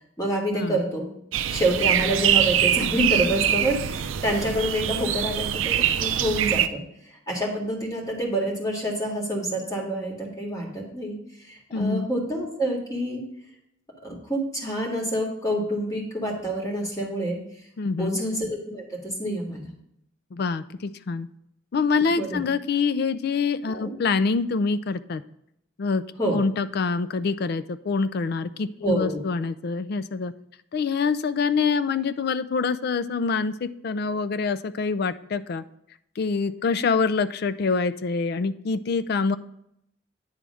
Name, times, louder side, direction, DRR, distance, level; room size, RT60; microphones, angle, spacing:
voice 1, 0.2-1.1 1.5-6.8 7.3-11.2 11.4-13.2 14.0-17.4 18.0-19.7 22.2-22.4 23.7-23.9 26.2-26.4 28.8-29.2, right 1 dB, 20° left, -2 dB, 1.8 m, -27 dB
sound 1, 1.3-6.7, right 10 dB, 85° right, 0.4 m, -24 dB
voice 2, 11.7-12.1 17.8-18.2 20.3-21.3 21.7-25.2 25.8-26.0 26.3-30.3 30.7-35.6 36.2-39.4, left 4 dB, 55° left, 14 dB, 0.4 m, -25 dB
9.7 x 3.4 x 6.2 m, 0.75 s
head